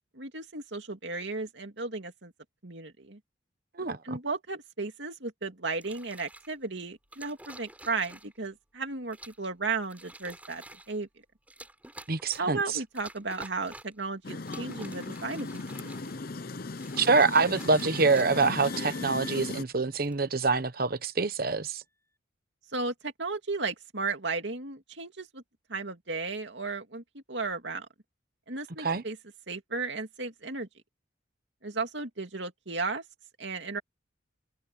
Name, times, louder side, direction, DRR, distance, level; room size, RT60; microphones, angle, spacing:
voice 1, 0.1-2.3 2.6-3.2 4.0-11.1 12.4-15.9 22.7-25.4 25.7-27.9 28.5-29.2 29.5-30.7 31.6-33.0 33.4-33.8, right 3 dB, 65° right, 2.6 m, -35 dB
voice 2, 3.8-4.2 12.1-12.6 17.0-21.8 28.8-29.0, right 4 dB, 50° right, 1.1 m, -25 dB
sound 1, 5.8-6.5 7.1-8.5 9.1-9.5 9.8-11.0 11.5-12.6 13.0-14.0 14.4-16.3 16.7-19.1 19.9-20.2, right 1 dB, 10° right, 5.6 m, -49 dB
sound 2, 14.2-19.6, left 3 dB, 50° left, 0.7 m, -37 dB
sound 3, 16.4-20.4, left 2 dB, 15° left, 6.0 m, -50 dB
head